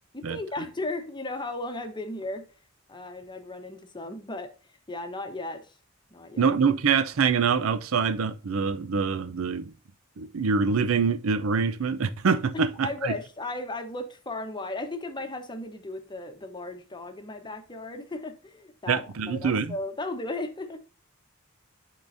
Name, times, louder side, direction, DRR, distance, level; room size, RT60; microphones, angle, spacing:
voice 1, 0.1-2.4 2.9-4.5 4.9-5.8 6.1-6.5 12.8-20.8, left 2 dB, 20° left, 0.9 m, -35 dB
voice 2, 6.4-9.7 10.2-13.1 18.9-19.7, right 5 dB, 85° right, 0.5 m, -25 dB
10.5 x 3.8 x 2.6 m
head